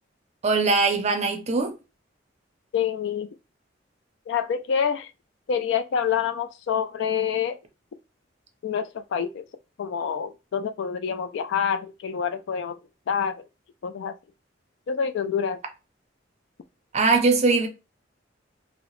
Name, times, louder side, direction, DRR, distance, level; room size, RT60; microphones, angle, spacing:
voice 1, 0.4-1.7 16.9-17.7, right 3 dB, 35° right, 0.5 m, -21 dB
voice 2, 2.7-3.3 4.3-5.1 5.5-7.6 8.6-9.4 9.8-12.8 13.1-13.4 13.8-14.1 14.9-15.6, left 7 dB, 65° left, 0.3 m, -27 dB
2.7 x 2.0 x 3.0 m
head